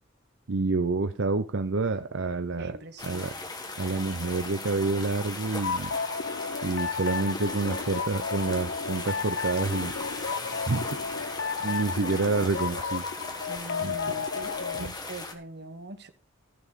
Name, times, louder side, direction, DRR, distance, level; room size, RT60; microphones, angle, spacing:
voice 1, 0.5-2.8 3.0-3.3 3.8-5.9 6.6-9.9 10.7-10.9 11.6-13.0 13.8-14.1 14.8-14.9, right 3 dB, 70° right, 0.7 m, -28 dB
voice 2, 2.6-3.3 13.5-16.1, right 2 dB, 55° right, 1.3 m, -43 dB
sound 1, 3.0-15.3, left 3 dB, 20° left, 1.6 m, -38 dB
sound 2, 5.6-14.9, left 5 dB, 60° left, 0.6 m, -33 dB
15.0 x 7.2 x 4.1 m
head